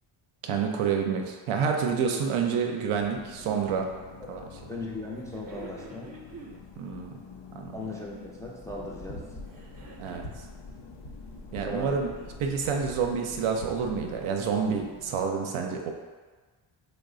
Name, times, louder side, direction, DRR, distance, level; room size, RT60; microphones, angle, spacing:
voice 1, 0.4-3.9 4.3-4.4 6.8-7.1 7.5-7.7 10.0-10.2 11.5-12.1 12.4-15.9, right 6 dB, 85° right, 3 dB, 0.6 m, -28 dB
sound 1, 2.9-15.3, left 5 dB, 60° left, 0.5 m, -49 dB
sound 2, 3.2-3.7 5.2-6.6 7.7-8.4 9.4-10.4 11.8-12.8 13.9-14.0, right 4 dB, 40° right, 0.7 m, -48 dB
voice 2, 4.7-6.1 7.7-9.2 11.6-12.0, left 2 dB, 5° left, -4 dB, 0.4 m, -37 dB
sound 3, 8.7-14.2, left 1 dB, 80° left, 0.9 m, -45 dB
3.1 x 2.1 x 3.7 m, 1.4 s
cardioid pair, 85°, 48 cm